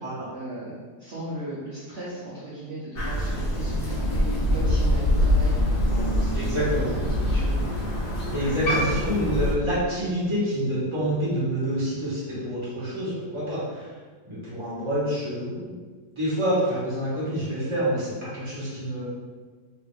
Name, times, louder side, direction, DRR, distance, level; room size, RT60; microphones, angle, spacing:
voice 1, 0.3-7.6, right 1 dB, 55° right, -9 dB, 0.7 m, -37 dB
Crow, 3.0-9.5, left 1 dB, 65° left, 0.5 m, -24 dB
voice 2, 6.3-6.9 8.3-14.0 14.2-15.8 16.2-19.1, equal, 20° right, -9 dB, 1.0 m, -27 dB
3.1 x 2.7 x 3.2 m, 1.4 s
omnidirectional pair, 2.0 m